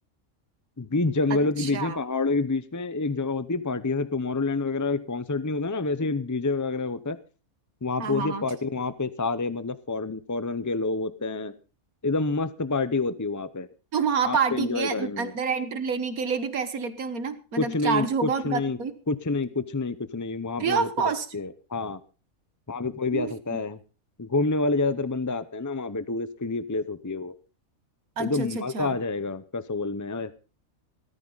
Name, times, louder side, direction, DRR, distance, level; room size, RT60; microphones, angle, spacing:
voice 1, 0.8-7.2 7.8-11.5 12.0-13.7 14.2-15.3 17.6-18.8 19.1-22.0 22.7-23.8 24.2-27.3 28.2-30.3, left 3 dB, 25° left, 13 dB, 0.3 m, -28 dB
voice 2, 1.3-2.0 8.0-8.4 13.9-18.9 20.6-21.3 23.1-23.6 28.2-29.0, right 5 dB, 85° right, 10 dB, 1.8 m, -28 dB
18.5 x 13.5 x 3.9 m, 0.35 s
omnidirectional pair, 1.5 m